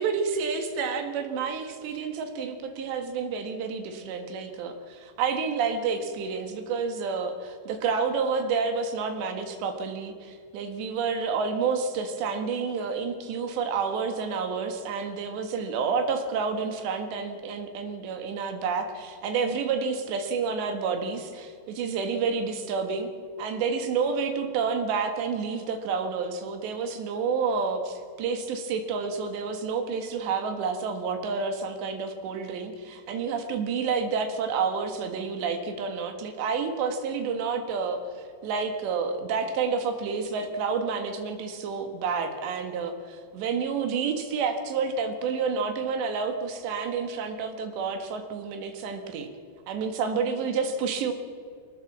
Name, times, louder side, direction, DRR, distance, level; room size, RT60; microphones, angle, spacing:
voice 1, 0.0-23.1 23.4-38.0 38.4-49.3 49.7-51.1, right 5 dB, 85° right, 6 dB, 3.9 m, -29 dB
24.0 x 18.5 x 7.4 m, 2.2 s
omnidirectional pair, 4.9 m